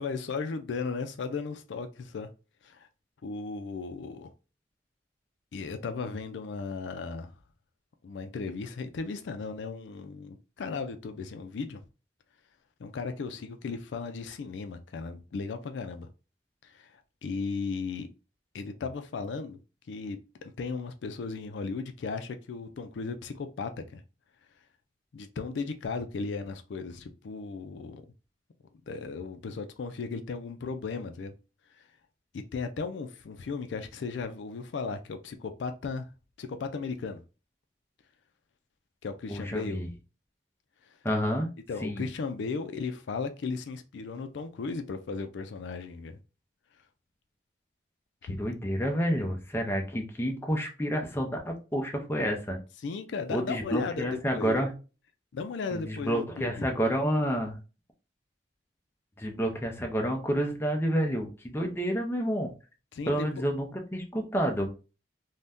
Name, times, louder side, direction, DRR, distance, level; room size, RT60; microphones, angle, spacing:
voice 1, 0.0-2.3 2.6-2.9 3.2-4.3 5.5-7.3 8.0-11.8 12.8-16.1 16.6-18.1 18.5-19.6 19.9-24.0 25.1-28.0 28.9-31.3 31.8-31.9 32.3-36.1 36.4-37.2 39.0-39.8 41.7-46.2 48.2-48.4 52.8-54.6 55.3-56.5 62.9-63.3, left 4 dB, 75° left, 0.4 m, -36 dB
voice 2, 39.3-39.9 41.0-41.5 41.8-42.0 48.3-52.6 53.3-54.7 55.7-57.6 59.2-62.5 63.1-64.7, equal, 15° left, 0.5 m, -29 dB
2.6 x 2.1 x 3.4 m
head